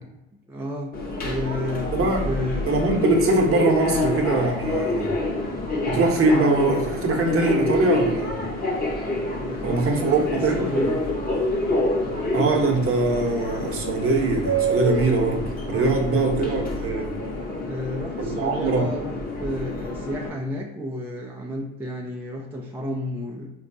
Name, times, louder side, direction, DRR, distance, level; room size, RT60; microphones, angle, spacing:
voice 1, 0.5-2.7 9.4-10.3 10.5-11.0 15.9-16.5 17.6-19.1 19.4-23.5, equal, 5° right, -1 dB, 0.3 m, -31 dB
Subway metro underground, 0.9-20.3, left 1 dB, 25° left, 0.8 m, -27 dB
voice 2, 1.9-2.2 2.7-5.1 5.9-8.4 9.6-10.7 12.3-17.1 18.2-18.9, right 2 dB, 40° right, 2 dB, 0.8 m, -22 dB
3.6 x 2.3 x 2.6 m, 0.95 s
hypercardioid pair, 65°, 36 cm